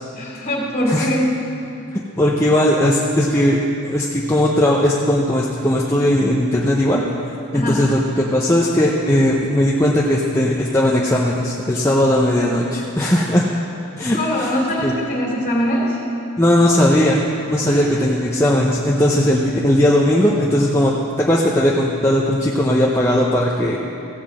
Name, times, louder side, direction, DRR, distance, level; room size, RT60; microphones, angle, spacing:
voice 1, 0.1-1.3 7.5-7.8 14.1-16.0 17.6-18.0, equal, 35° left, -3 dB, 2.8 m, -22 dB
voice 2, 1.9-7.0 7.5-13.4 14.0-14.2 14.8-14.9 16.4-23.8, left 1 dB, 10° left, -3 dB, 0.6 m, -17 dB
15.5 x 5.5 x 7.5 m, 2.7 s
head